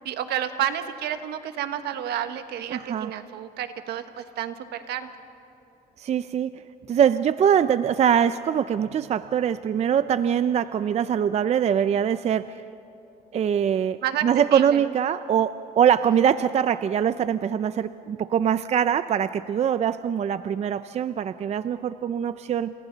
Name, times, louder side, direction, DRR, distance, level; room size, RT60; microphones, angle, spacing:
voice 1, 0.0-5.1 14.0-14.3 14.5-14.9, right 10 dB, 75° right, 8 dB, 1.4 m, -30 dB
voice 2, 2.7-3.1 6.0-6.6 6.9-12.6 13.3-22.7, right 8 dB, 40° right, 13 dB, 0.5 m, -23 dB
29.5 x 27.5 x 4.0 m, 2.7 s
cardioid pair, 110°, 17 cm